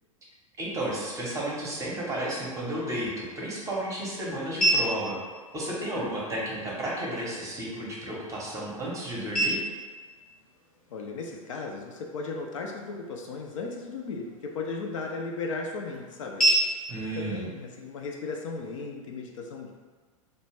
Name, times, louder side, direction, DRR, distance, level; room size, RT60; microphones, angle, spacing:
voice 1, 0.6-5.2 5.5-9.6 16.9-17.4, right 1 dB, 15° right, -5 dB, 0.7 m, -32 dB
sound 1, 2.8-18.8, right 2 dB, 80° left, 0.9 m, -34 dB
voice 2, 5.9-6.5 10.9-16.5 17.1-19.7, left 4 dB, 60° left, 1 dB, 0.4 m, -36 dB
2.3 x 2.1 x 3.2 m, 1.4 s
figure-of-eight pair, 95°, 18 cm